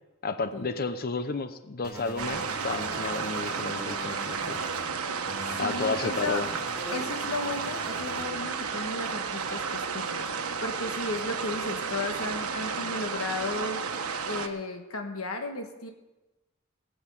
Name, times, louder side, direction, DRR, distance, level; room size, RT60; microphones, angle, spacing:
voice 1, 0.2-4.6 5.6-6.5, left 4 dB, 45° left, 11 dB, 0.8 m, -32 dB
sound 1, 1.8-4.8 5.3-8.3, equal, 5° right, 3.5 m, -42 dB
sound 2, 2.2-14.5, right 5 dB, 80° right, 1.3 m, -32 dB
voice 2, 5.6-6.4 6.9-13.8 14.3-15.9, left 2 dB, 75° left, 5 dB, 1.4 m, -34 dB
17.0 x 7.9 x 7.7 m, 1.1 s
head